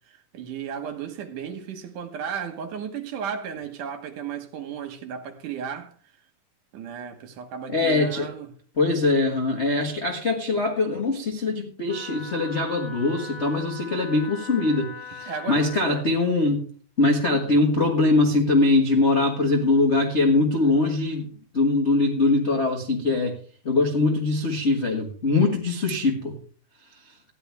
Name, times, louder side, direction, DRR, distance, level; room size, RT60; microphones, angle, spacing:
voice 1, 0.1-5.9 6.7-8.5 15.3-16.0 17.3-17.4, right 7 dB, 65° right, 2.6 m, -34 dB
voice 2, 7.7-8.3 8.8-16.6 17.0-23.4 23.6-26.3 27.1-27.2, left 2 dB, 80° left, 0.6 m, -22 dB
Wind instrument woodwind instrument, 11.9-16.1, left 4 dB, 10° left, 1.8 m, -40 dB
15.0 x 10.5 x 3.5 m
omnidirectional pair, 4.1 m